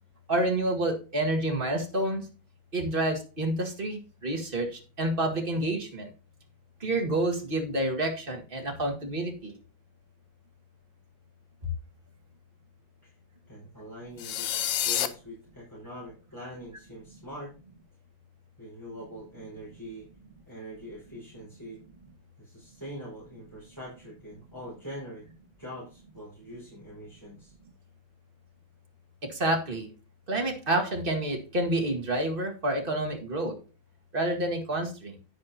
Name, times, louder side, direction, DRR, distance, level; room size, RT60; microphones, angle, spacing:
voice 1, 0.3-2.3 2.7-6.1 6.8-9.5 29.2-29.9 30.3-33.6 34.1-35.2, right 1 dB, 30° right, 2 dB, 2.0 m, -29 dB
voice 2, 13.5-17.5 18.6-20.1 20.5-21.8 22.4-25.3 25.6-27.5, equal, 10° left, -8 dB, 5.0 m, -43 dB
sound 1, 14.2-15.1, left 11 dB, 80° left, 1.5 m, -28 dB
10.0 x 10.0 x 2.8 m, 0.34 s
omnidirectional pair, 2.0 m